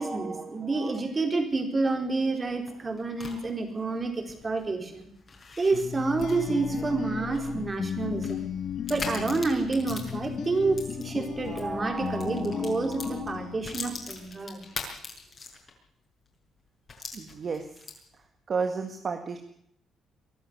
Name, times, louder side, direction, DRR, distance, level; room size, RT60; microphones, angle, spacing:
voice 1, 0.0-5.1 5.6-8.5 8.9-14.6, right 3 dB, 30° right, 6 dB, 4.4 m, -29 dB
sound 1, 2.4-11.7 12.0-15.9 16.2-16.3 16.9-18.2, left 4 dB, 40° left, 6.4 m, -42 dB
sound 2, 5.7-14.4, left 8 dB, 65° left, 1.3 m, -36 dB
voice 2, 17.1-17.6 18.5-19.4, right 5 dB, 45° right, 6 dB, 1.8 m, -31 dB
23.0 x 12.0 x 9.7 m, 0.72 s
cardioid pair, 90°, 0 cm